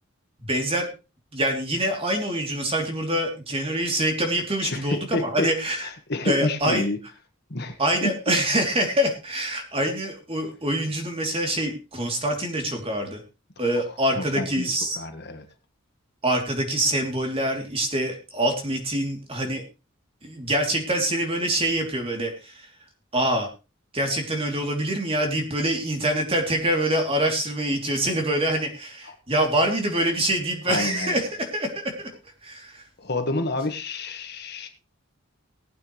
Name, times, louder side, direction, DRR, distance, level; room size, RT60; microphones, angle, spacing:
voice 1, 0.5-0.9 1.3-5.9 6.2-6.9 7.8-13.2 13.6-15.0 16.2-19.6 20.2-22.7 23.1-23.5 23.9-32.1 32.4-32.8, right 1 dB, 25° right, 3.2 m, -25 dB
voice 2, 4.6-5.5 5.8-7.0 7.5-8.1 13.9-15.4 30.6-31.2 33.0-34.7, left 2 dB, 50° left, 1.6 m, -29 dB
20.0 x 8.7 x 3.3 m
head